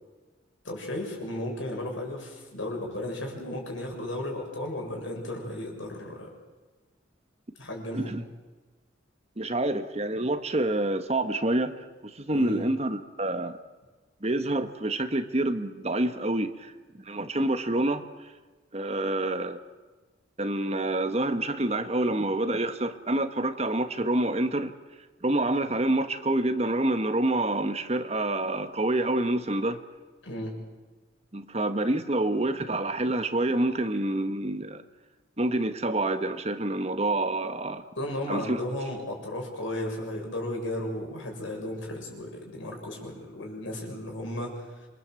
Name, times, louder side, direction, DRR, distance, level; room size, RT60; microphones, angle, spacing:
voice 1, 0.6-6.3 7.6-8.2 12.3-12.6 30.2-30.5 38.0-44.7, left 1 dB, 85° left, 1 dB, 7.0 m, -34 dB
voice 2, 9.4-13.6 14.2-18.3 18.7-19.6 20.4-24.7 25.2-29.8 31.3-34.8 35.4-37.8 38.3-38.6, right 1 dB, 35° right, 9 dB, 1.3 m, -27 dB
27.0 x 23.0 x 7.7 m, 1.3 s
head